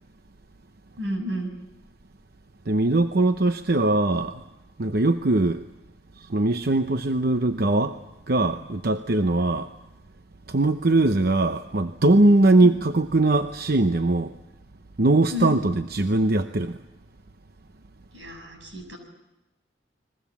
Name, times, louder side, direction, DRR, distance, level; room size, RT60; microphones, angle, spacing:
voice 1, 1.0-1.5 12.6-12.8 15.3-15.6 18.1-19.0, left 1 dB, 90° right, 6.9 m, -31 dB
voice 2, 2.7-4.4 4.8-5.6 6.2-8.0 8.3-9.7 10.5-14.3 15.0-16.8, right 2 dB, 60° right, 0.8 m, -21 dB
30.0 x 22.0 x 7.2 m
head